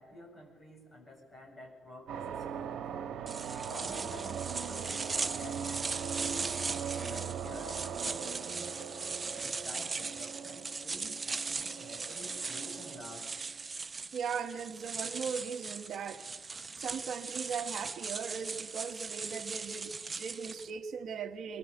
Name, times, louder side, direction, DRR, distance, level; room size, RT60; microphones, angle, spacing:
voice 1, 0.0-3.2 3.7-6.5 7.0-8.9 9.6-13.3, left 1 dB, 25° left, 1 dB, 7.5 m, -50 dB
sound 1, 2.1-13.5, right 7 dB, 80° right, 1.4 m, -40 dB
sound 2, 3.3-20.7, right 4 dB, 25° right, 0.7 m, -39 dB
voice 2, 14.1-16.3 16.8-21.6, right 6 dB, 60° right, 7 dB, 1.3 m, -38 dB
24.5 x 22.5 x 8.0 m, 1.5 s
cardioid pair, 145°, 0 cm